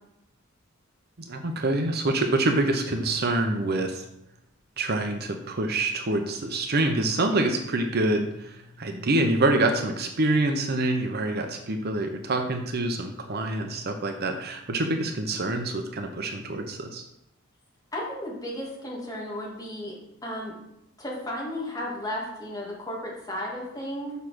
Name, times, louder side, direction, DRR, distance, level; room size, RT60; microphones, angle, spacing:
voice 1, 1.2-4.0 4.8-17.0, right 2 dB, 55° right, 5 dB, 0.8 m, -26 dB
voice 2, 17.9-20.0 20.2-20.6 21.0-24.1, left 1 dB, 20° left, -4 dB, 2.7 m, -34 dB
6.4 x 5.5 x 6.2 m, 0.83 s
head